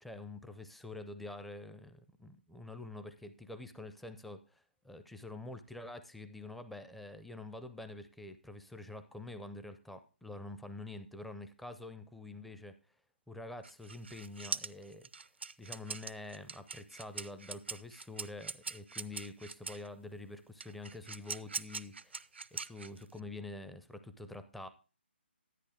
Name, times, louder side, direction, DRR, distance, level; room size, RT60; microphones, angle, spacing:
voice 1, 0.0-12.8 13.3-15.1 15.6-22.2 22.5-24.7, left 2 dB, ahead, 10 dB, 0.5 m, -47 dB
sound 1, 13.6-19.9 20.6-23.2, right 4 dB, 80° right, 0.5 m, -42 dB
11.0 x 9.8 x 3.5 m, 0.32 s
figure-of-eight pair, 145°, 6 cm